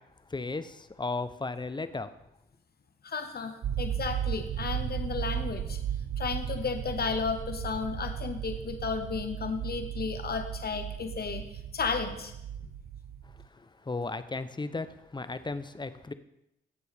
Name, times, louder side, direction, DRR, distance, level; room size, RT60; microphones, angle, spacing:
voice 1, 0.3-2.1 13.5-14.9 15.1-16.1, left 3 dB, 20° left, 12 dB, 0.8 m, -35 dB
voice 2, 3.0-5.8 6.2-11.5 11.7-12.3, left 5 dB, 50° left, 7 dB, 1.2 m, -33 dB
sound 1, 3.6-13.5, right 9 dB, 65° right, 0.7 m, -35 dB
16.5 x 7.6 x 3.5 m, 0.84 s
cardioid pair, 65°, 21 cm